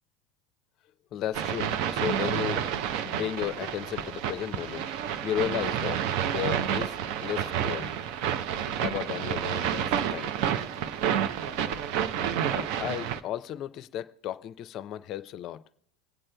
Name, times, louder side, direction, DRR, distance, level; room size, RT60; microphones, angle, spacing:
voice 1, 1.1-2.7 3.0-4.9 5.2-8.0 8.8-10.4 10.9-11.1 12.6-15.6, left 11 dB, 45° left, 0.5 m, -34 dB
sound 1, 1.3-13.2, right 9 dB, 60° right, 0.6 m, -29 dB
26.0 x 8.7 x 2.2 m
hypercardioid pair, 90°, 0 cm